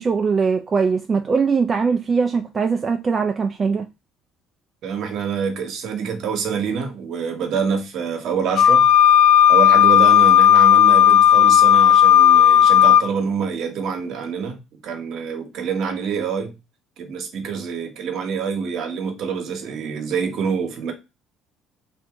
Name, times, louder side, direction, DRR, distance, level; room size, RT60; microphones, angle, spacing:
voice 1, 0.0-3.9, right 5 dB, 30° right, 0.3 m, -21 dB
voice 2, 4.8-8.9 9.5-14.6 14.8-16.5 17.0-20.9, right 6 dB, 60° right, 0.9 m, -26 dB
Wind instrument woodwind instrument, 8.6-13.1, left 10 dB, 85° left, 0.5 m, -12 dB
2.7 x 2.6 x 3.4 m
cardioid pair, 105°, 0 cm